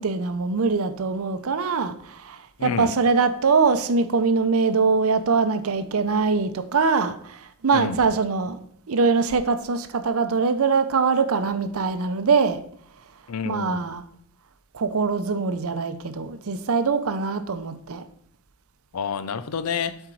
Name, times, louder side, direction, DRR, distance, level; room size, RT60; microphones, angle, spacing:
voice 1, 0.0-8.6 8.9-12.6 13.4-14.0 14.7-18.1, right 4 dB, 70° right, 0.6 m, -23 dB
voice 2, 2.6-2.9 7.7-8.0 13.3-13.9 18.9-20.0, left 6 dB, 75° left, 0.5 m, -28 dB
7.7 x 4.4 x 4.6 m
head